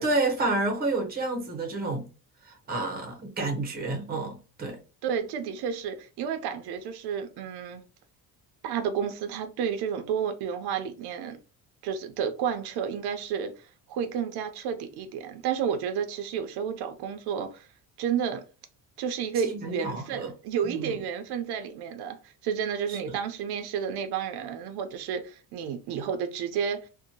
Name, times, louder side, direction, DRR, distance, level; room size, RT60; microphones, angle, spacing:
voice 1, 0.0-2.0 2.5-4.8 19.4-20.3 20.6-21.0 22.9-23.0, right 2 dB, 25° right, 0.6 m, -30 dB
voice 2, 5.0-7.8 8.6-11.4 11.8-17.7 18.0-18.4 19.0-26.8, right 7 dB, 90° right, 0.6 m, -31 dB
2.6 x 2.1 x 2.8 m
cardioid pair, 165°, 38 cm